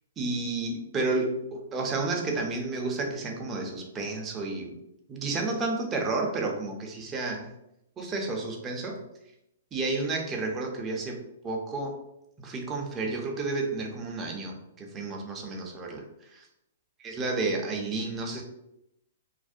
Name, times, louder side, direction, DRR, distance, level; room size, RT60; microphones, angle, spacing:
voice 1, 0.2-4.7 5.1-7.5 8.0-9.0 9.7-11.2 11.4-12.0 12.4-16.0 16.3-16.5 17.0-18.4, right 3 dB, 20° right, 0 dB, 0.5 m, -31 dB
2.6 x 2.1 x 2.4 m, 0.84 s
hypercardioid pair, 125°, 0 cm